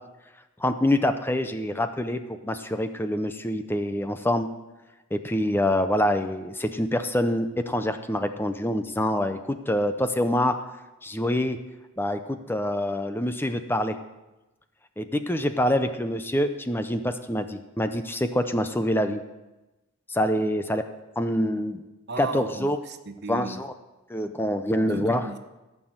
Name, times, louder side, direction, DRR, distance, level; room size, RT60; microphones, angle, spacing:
voice 1, 0.6-4.5 5.1-10.6 11.0-11.6 12.0-14.0 15.0-19.2 20.1-20.8 21.2-21.8 22.2-22.8 23.3-23.7 24.1-25.3, left 1 dB, 10° left, 8 dB, 0.6 m, -26 dB
voice 2, 22.1-23.7 24.9-25.4, right 4 dB, 55° right, 9 dB, 0.9 m, -36 dB
15.5 x 6.2 x 7.8 m, 1.0 s
head